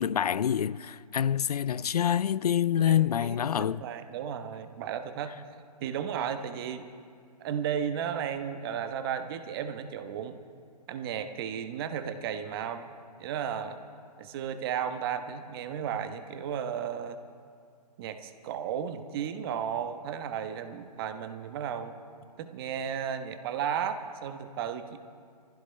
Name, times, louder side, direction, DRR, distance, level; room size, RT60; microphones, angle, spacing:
voice 1, 0.0-3.8, left 9 dB, 65° left, 0.4 m, -26 dB
voice 2, 2.8-5.4 5.8-6.9 7.4-10.4 10.9-12.9 13.2-13.8 14.2-17.2 18.0-22.0 22.4-25.0, right 8 dB, 35° right, 1.1 m, -34 dB
24.5 x 15.5 x 3.3 m
hypercardioid pair, 135°, 21 cm